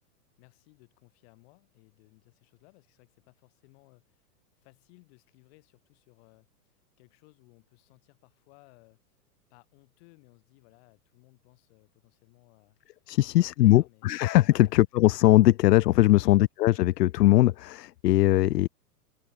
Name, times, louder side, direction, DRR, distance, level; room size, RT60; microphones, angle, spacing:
voice 1, 0.4-4.2 4.6-6.5 7.0-9.0 9.5-12.8 13.2-14.7 16.0-16.5, left 29 dB, 40° left, 7.8 m, -59 dB
voice 2, 13.1-18.7, left 16 dB, 85° left, 0.7 m, -21 dB
open air
supercardioid pair, 160°, 47 cm